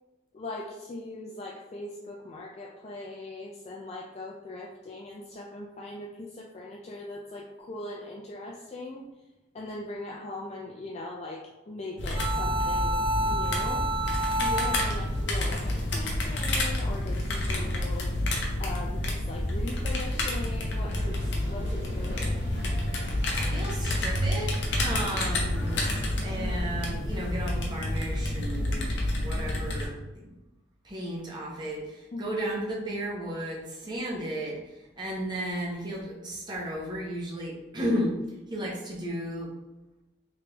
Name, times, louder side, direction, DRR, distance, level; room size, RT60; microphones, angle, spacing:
voice 1, 0.3-9.1 9.5-13.9 14.4-18.1 18.6-22.5 32.1-32.3, left 2 dB, 35° left, -1 dB, 0.3 m, -40 dB
sound 1, 12.0-29.9, left 1 dB, 65° left, 0.7 m, -29 dB
sound 2, 12.1-15.2, right 1 dB, 50° right, 1.1 m, -29 dB
sound 3, 20.9-27.1, right 1 dB, 75° right, 0.9 m, -36 dB
voice 2, 23.5-24.5 24.8-25.9 26.2-30.3 30.8-38.2 38.5-39.5, equal, 25° right, -4 dB, 0.8 m, -34 dB
3.3 x 3.3 x 2.9 m, 1.0 s
head